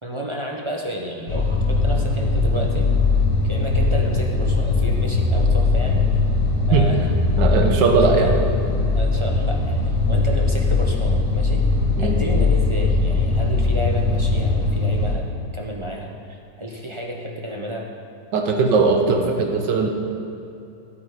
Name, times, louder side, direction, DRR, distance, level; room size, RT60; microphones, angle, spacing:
voice 1, 0.0-2.9 3.4-6.0 6.6-7.1 7.4-7.5 8.0-8.3 8.9-11.6 12.0-15.3 15.5-17.9, right 1 dB, 25° right, 0 dB, 0.7 m, -31 dB
sound 1, 1.3-15.2, left 3 dB, 55° left, 1.5 m, -20 dB
voice 2, 7.4-8.4 12.0-12.2 18.3-19.9, right 4 dB, 85° right, 3 dB, 1.7 m, -19 dB
12.5 x 8.5 x 5.0 m, 2.7 s
omnidirectional pair, 1.8 m